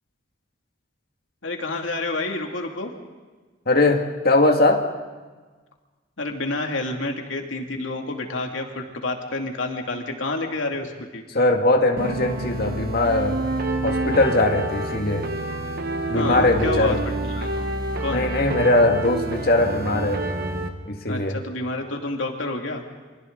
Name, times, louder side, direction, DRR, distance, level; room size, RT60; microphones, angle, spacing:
voice 1, 1.4-2.9 6.2-11.2 16.1-17.5 18.0-18.3 21.1-22.8, left 2 dB, 80° left, 2 dB, 2.6 m, -29 dB
voice 2, 3.7-4.9 11.3-13.4 13.8-15.3 16.1-17.0 18.1-20.2 20.9-21.4, left 2 dB, 50° left, 3 dB, 2.1 m, -20 dB
sound 1, 12.0-20.7, right 2 dB, 50° right, 1.4 m, -28 dB
29.5 x 25.0 x 4.0 m, 1.3 s
head